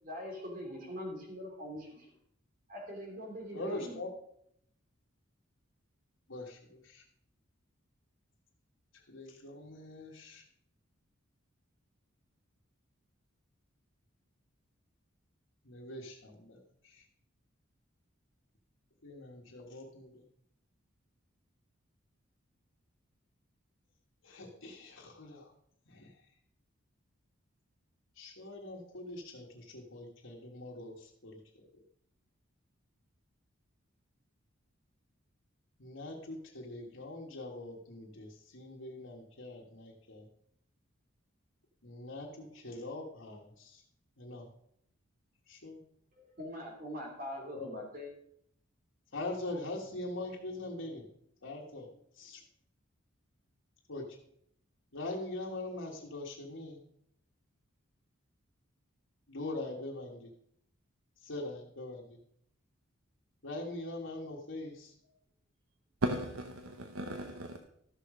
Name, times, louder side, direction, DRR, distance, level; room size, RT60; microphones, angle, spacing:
voice 1, 0.0-2.1 2.7-4.0 46.1-48.1, equal, 40° right, 0 dB, 3.0 m, -42 dB
voice 2, 3.5-4.1 6.3-7.0 8.9-10.4 15.6-17.0 19.0-20.2 24.2-25.5 25.9-26.1 28.1-31.8 35.8-40.3 41.8-43.8 44.2-44.5 45.5-45.8 47.5-47.7 49.1-51.1 51.4-51.9 52.2-52.4 53.9-54.1 54.9-56.8 59.3-60.3 61.2-62.2 63.4-64.9, left 2 dB, 70° left, -5 dB, 1.7 m, -43 dB
voice 3, 66.0-67.6, right 1 dB, 90° right, 6 dB, 0.8 m, -36 dB
13.5 x 6.6 x 5.0 m, 0.71 s
head